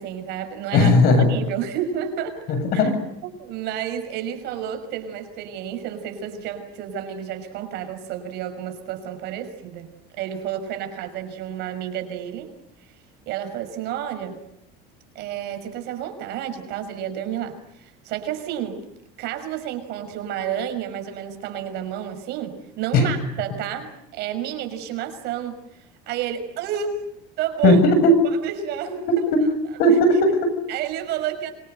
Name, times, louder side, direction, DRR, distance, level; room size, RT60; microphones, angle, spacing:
voice 1, 0.0-2.4 2.7-2.9 3.4-12.5 13.3-14.4 15.1-18.8 19.2-27.1 27.4-27.8 28.4-29.2 30.7-31.5, right 9 dB, 60° right, 7 dB, 6.0 m, -30 dB
voice 2, 0.7-1.3 2.5-3.0 22.9-23.1 27.6-28.2 29.1-29.4 29.8-30.5, left 1 dB, 50° left, 9 dB, 7.5 m, -17 dB
26.5 x 25.0 x 8.0 m, 0.77 s
cardioid pair, 150°, 20 cm